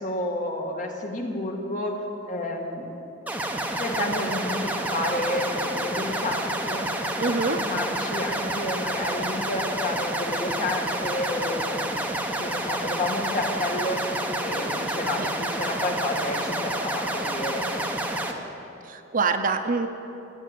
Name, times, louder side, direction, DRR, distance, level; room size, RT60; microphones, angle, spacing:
voice 1, 0.0-2.0 2.3-2.9 3.8-6.9 7.2-11.9 12.3-14.0 14.4-17.7, left 1 dB, 40° left, 1 dB, 1.6 m, -30 dB
sound 1, 3.3-18.3, right 1 dB, 10° right, 1.0 m, -29 dB
voice 2, 7.2-7.6 15.2-15.3 18.9-19.9, right 4 dB, 45° right, 7 dB, 0.7 m, -25 dB
16.5 x 6.6 x 9.2 m, 3.0 s
head